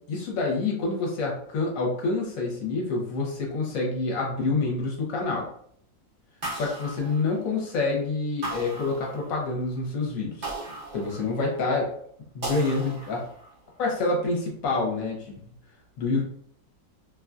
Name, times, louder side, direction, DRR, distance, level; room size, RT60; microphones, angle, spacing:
voice 1, 0.1-5.5 6.5-10.5 10.9-11.9 12.3-13.2 13.8-15.4 16.0-16.2, left 3 dB, 55° left, -1 dB, 1.1 m, -27 dB
sound 1, 6.4-7.8 8.4-9.6 10.4-11.7 12.4-13.6, right 2 dB, 55° right, 0.5 m, -37 dB
2.9 x 2.3 x 2.4 m, 0.63 s
omnidirectional pair, 2.0 m